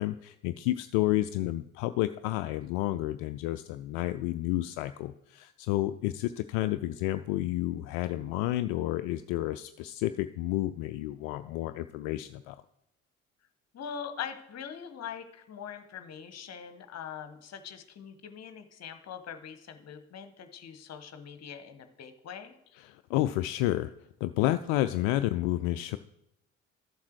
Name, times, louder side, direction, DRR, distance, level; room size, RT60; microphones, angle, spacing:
voice 1, 0.0-12.6 22.8-23.9 24.2-26.0, left 15 dB, 60° left, 11 dB, 0.5 m, -30 dB
voice 2, 13.7-22.5, left 8 dB, 45° left, 9 dB, 1.2 m, -42 dB
12.5 x 7.3 x 4.6 m, 0.84 s
figure-of-eight pair, 45°, 38 cm